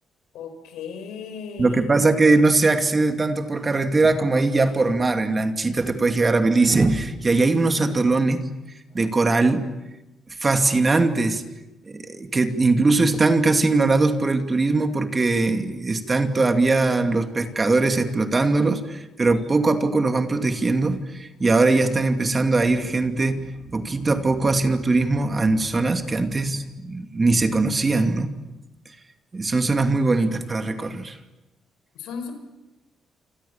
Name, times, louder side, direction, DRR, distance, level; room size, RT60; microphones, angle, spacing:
voice 1, 0.3-1.8 31.9-32.3, left 6 dB, 85° left, 8 dB, 5.4 m, -35 dB
voice 2, 1.6-8.4 8.9-9.7 10.4-11.4 11.9-28.3 29.3-31.2, right 3 dB, 30° right, 6 dB, 2.6 m, -21 dB
28.5 x 26.0 x 7.3 m, 1.0 s
cardioid pair, 90°, 0 cm